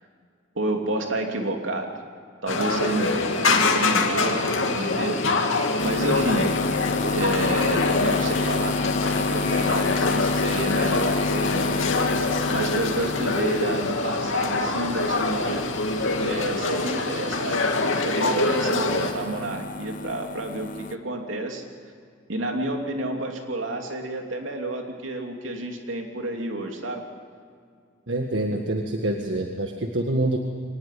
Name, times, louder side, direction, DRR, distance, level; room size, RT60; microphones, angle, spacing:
voice 1, 0.5-1.9 2.4-3.2 3.5-5.2 5.8-6.5 7.1-12.2 12.5-15.7 16.2-21.6 22.3-27.0, right 2 dB, 90° right, 2 dB, 3.0 m, -30 dB
sound 1, 2.5-19.1, left 3 dB, 90° left, 2.5 m, -25 dB
sound 2, 5.8-17.0 17.3-21.0, left 4 dB, 45° left, 0.8 m, -30 dB
voice 2, 28.1-30.4, right 1 dB, 70° right, 2 dB, 1.7 m, -26 dB
24.5 x 19.5 x 8.5 m, 2.2 s
head